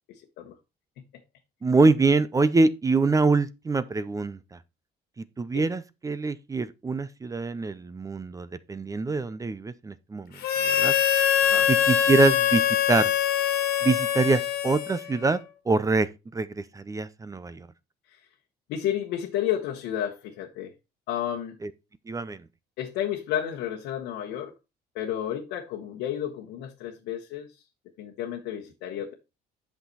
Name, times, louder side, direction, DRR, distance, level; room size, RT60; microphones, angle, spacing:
voice 1, 0.1-0.5 1.1-1.2 5.5-5.7 11.4-11.7 18.1-18.2 18.7-20.7 21.1-21.6 22.8-24.5 24.9-27.6 28.0-29.1, left 10 dB, 90° left, 1.1 m, -32 dB
voice 2, 1.6-4.4 5.2-10.3 10.6-10.9 11.7-13.1 13.8-15.4 15.7-16.5 16.7-17.7 21.6-21.7 22.1-22.4, right 3 dB, 20° right, 0.6 m, -24 dB
Harmonica, 10.4-15.3, left 10 dB, 65° left, 1.6 m, -23 dB
8.2 x 5.9 x 4.0 m
cardioid pair, 110°, 17 cm